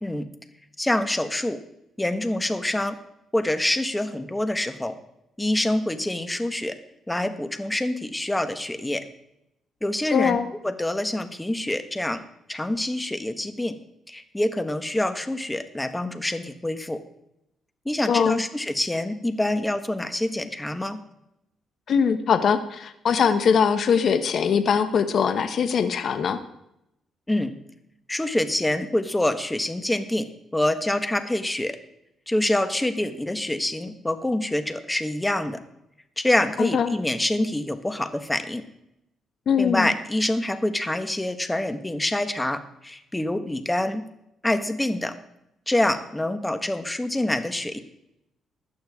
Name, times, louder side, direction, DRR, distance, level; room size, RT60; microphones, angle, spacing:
voice 1, 0.8-1.6 2.0-3.0 3.3-5.0 5.4-6.8 7.1-9.0 9.8-10.4 10.6-12.2 12.5-13.8 14.1-17.0 17.8-21.0 27.3-27.5 28.1-30.3 30.5-31.8 32.3-35.6 36.2-38.6 39.6-44.0 44.4-45.1 45.7-47.8, left 1 dB, 10° left, 9 dB, 1.3 m, -26 dB
voice 2, 10.1-10.4 18.1-18.4 21.9-26.4 36.6-36.9 39.5-39.9, left 7 dB, 60° left, 9 dB, 1.0 m, -22 dB
16.0 x 11.5 x 3.6 m, 0.83 s
cardioid pair, 90°, 0 cm